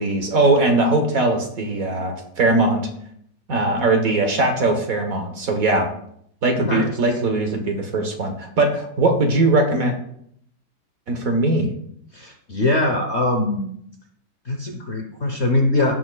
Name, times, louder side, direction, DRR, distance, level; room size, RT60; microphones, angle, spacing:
voice 1, 0.0-2.9 3.5-5.9 6.4-9.9 11.1-11.7, right 2 dB, 50° right, 4 dB, 1.4 m, -20 dB
voice 2, 6.6-7.0 12.1-13.7 14.4-15.9, left 2 dB, 50° left, 3 dB, 0.9 m, -22 dB
15.0 x 6.4 x 2.3 m, 0.69 s
omnidirectional pair, 2.0 m